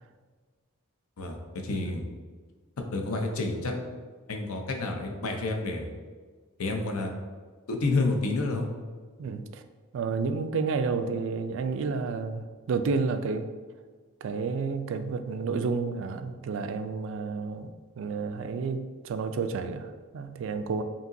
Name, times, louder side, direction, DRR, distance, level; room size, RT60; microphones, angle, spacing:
voice 1, 1.6-2.0 2.9-3.7 4.3-5.9 6.6-7.1 7.7-8.7, left 2 dB, 80° left, 3 dB, 0.6 m, -29 dB
voice 2, 9.2-9.6 9.9-13.5 14.2-20.8, right 4 dB, 60° right, 9 dB, 0.3 m, -31 dB
5.2 x 2.9 x 2.6 m, 1.5 s
head